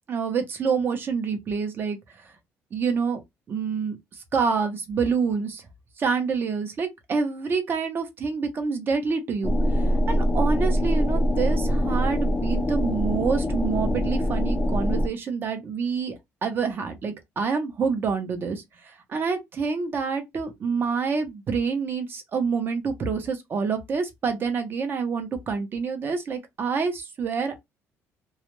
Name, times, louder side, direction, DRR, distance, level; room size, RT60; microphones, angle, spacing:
voice 1, 0.1-2.0 2.7-3.2 3.5-4.0 4.3-5.6 6.0-9.5 10.1-16.2 16.4-18.6 19.1-27.6, right 5 dB, 40° right, 0.8 m, -27 dB
sound 1, 9.4-15.1, equal, 20° left, 0.4 m, -23 dB
2.4 x 2.1 x 3.0 m
cardioid pair, 140°, 6 cm